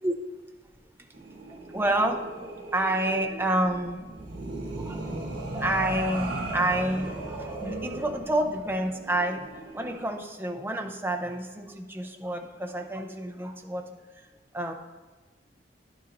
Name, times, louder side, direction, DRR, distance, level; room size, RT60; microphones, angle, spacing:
sound 1, 1.1-10.1, right 2 dB, 85° right, 1.3 m, -37 dB
voice 1, 1.5-4.0 4.6-14.0 14.5-14.7, right 1 dB, 15° right, 3 dB, 0.6 m, -29 dB
10.0 x 6.9 x 2.6 m, 1.3 s
head